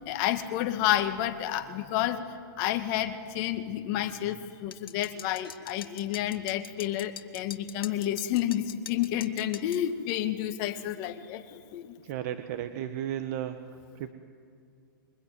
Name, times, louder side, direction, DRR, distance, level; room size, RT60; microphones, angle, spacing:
voice 1, 0.0-2.3 2.6-12.0, left 12 dB, 40° left, 7 dB, 1.8 m, -30 dB
sound 1, 4.7-9.8, left 8 dB, 90° left, 1.6 m, -44 dB
voice 2, 12.0-13.6 13.9-14.1, right 11 dB, 45° right, 9 dB, 1.3 m, -34 dB
26.5 x 23.0 x 9.4 m, 2.3 s
hypercardioid pair, 145°, 12 cm